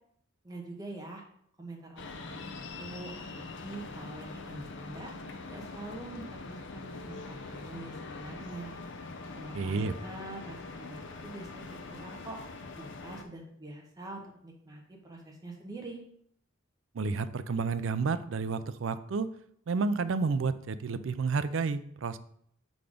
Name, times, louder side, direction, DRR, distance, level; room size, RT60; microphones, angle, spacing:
voice 1, 0.4-1.2 1.6-5.1 5.5-8.7 9.3-12.4 12.8-16.0, right 2 dB, 20° right, -1 dB, 1.3 m, -45 dB
sound 1, 2.0-13.2, left 3 dB, 60° left, 0.6 m, -43 dB
voice 2, 9.5-9.9 16.9-19.3 19.7-22.2, right 4 dB, 65° right, 13 dB, 0.4 m, -30 dB
6.9 x 4.0 x 5.0 m, 0.67 s
head